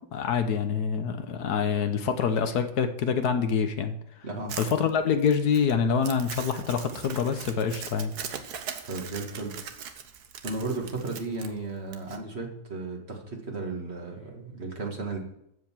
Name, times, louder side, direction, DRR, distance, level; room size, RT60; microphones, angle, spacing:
voice 1, 0.1-4.0 4.6-8.1, left 6 dB, 70° left, 8 dB, 1.5 m, -26 dB
Crumpling crinkling, 4.5-12.2, right 7 dB, 75° right, 1.5 m, -40 dB
voice 2, 8.8-9.6 10.4-15.2, right 3 dB, 40° right, 1 dB, 2.1 m, -34 dB
14.5 x 5.2 x 7.3 m, 0.78 s
omnidirectional pair, 1.7 m